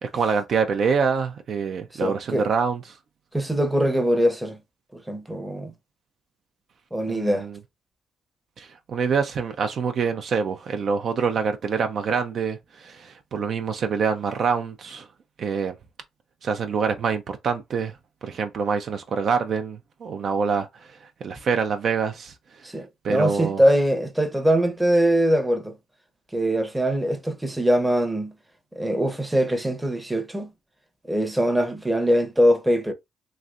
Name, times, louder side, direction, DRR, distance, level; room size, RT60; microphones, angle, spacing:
voice 1, 0.0-2.8 7.1-7.6 8.6-15.1 15.4-15.8 16.4-18.0 18.2-22.3 23.0-23.6, right 5 dB, 60° right, 0.5 m, -25 dB
voice 2, 1.9-2.4 3.3-4.6 4.9-5.7 6.9-7.5 22.6-25.8 26.3-28.3 28.7-30.5 31.1-32.9, equal, 10° right, 0.7 m, -22 dB
3.1 x 2.6 x 2.4 m
cardioid pair, 90°, 0 cm